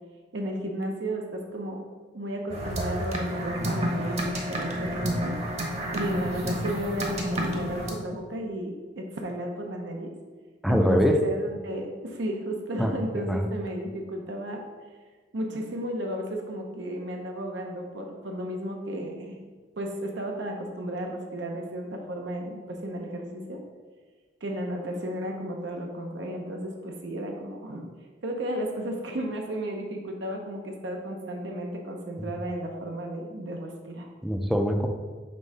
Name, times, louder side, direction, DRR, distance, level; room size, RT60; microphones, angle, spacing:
voice 1, 0.3-1.8 2.1-5.3 5.9-10.1 10.7-14.6 15.3-19.4 19.8-23.6 24.4-27.8 28.2-34.1, right 1 dB, 85° right, 1 dB, 0.7 m, -33 dB
sound 1, 2.5-7.9, equal, 35° right, 0.9 m, -30 dB
voice 2, 10.6-11.2 12.8-13.5 32.2-32.3 34.2-34.9, equal, ahead, 4 dB, 0.4 m, -24 dB
5.3 x 3.6 x 5.4 m, 1.4 s
head